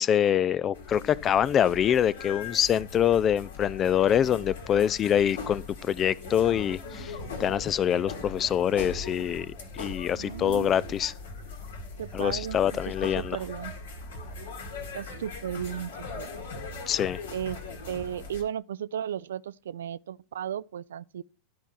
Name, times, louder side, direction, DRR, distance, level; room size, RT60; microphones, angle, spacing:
voice 1, 0.0-7.1 7.4-9.5 9.7-11.1 12.1-13.4 16.9-17.2, left 9 dB, 25° left, 0.4 m, -25 dB
sound 1, 0.7-18.4, left 3 dB, 60° left, 1.9 m, -40 dB
voice 2, 10.1-10.7 12.0-12.6 12.9-13.7 14.9-16.5 17.3-17.6 17.9-21.2, right 9 dB, 60° right, 0.4 m, -35 dB
12.5 x 4.6 x 5.6 m
figure-of-eight pair, 90°, 0 cm